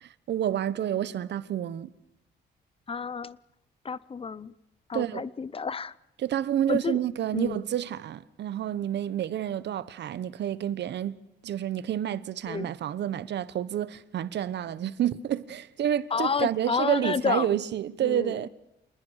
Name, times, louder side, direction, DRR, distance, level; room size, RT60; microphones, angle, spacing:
voice 1, 0.0-1.9 4.9-5.3 6.2-11.2 11.4-18.5, right 10 dB, 70° right, 1.0 m, -29 dB
voice 2, 2.9-3.4 3.8-4.5 4.9-5.9 6.7-7.0 7.3-7.6 12.5-12.7 16.1-17.6 18.0-18.3, left 5 dB, 30° left, 0.7 m, -30 dB
27.0 x 20.0 x 6.4 m
cardioid pair, 120°, 18 cm